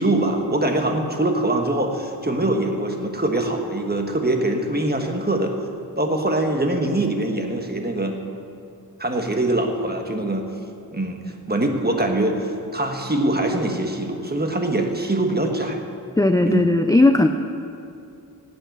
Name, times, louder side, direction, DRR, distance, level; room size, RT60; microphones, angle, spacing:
voice 1, 0.0-5.5 6.0-8.2 9.0-10.4 10.9-15.8 16.4-16.7, right 1 dB, 25° right, 3 dB, 1.4 m, -23 dB
voice 2, 16.2-17.3, left 2 dB, 10° left, 7 dB, 0.4 m, -16 dB
17.0 x 7.8 x 6.0 m, 2.6 s
wide cardioid pair, 80°, 40 cm